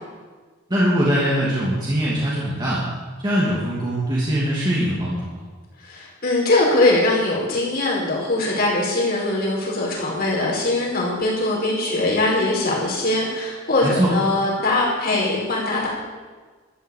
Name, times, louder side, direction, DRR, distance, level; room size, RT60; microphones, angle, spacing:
voice 1, 0.7-2.8 3.2-5.4 13.8-14.1, equal, 20° right, -7 dB, 2.8 m, -22 dB
voice 2, 5.8-15.9, left 2 dB, 50° left, -4 dB, 5.2 m, -21 dB
13.5 x 8.3 x 8.7 m, 1.4 s
head